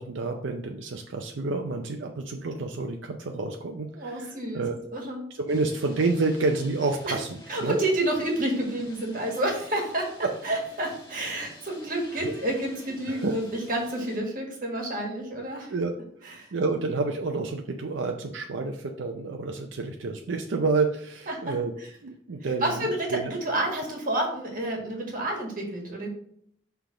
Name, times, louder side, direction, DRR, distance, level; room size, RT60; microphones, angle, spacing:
voice 1, 0.0-4.8 5.4-7.8 10.2-10.3 12.2-12.3 13.1-13.4 15.7-15.9 16.5-21.7 22.0-23.3, right 3 dB, 85° right, 3 dB, 0.5 m, -29 dB
voice 2, 3.9-5.2 7.0-7.2 7.5-10.1 10.4-15.7 16.2-16.8 21.3-21.5 22.6-26.1, right 1 dB, 45° right, 0 dB, 1.6 m, -29 dB
sound 1, 5.5-14.2, left 1 dB, 20° left, 1.2 m, -48 dB
5.9 x 3.4 x 4.8 m, 0.67 s
head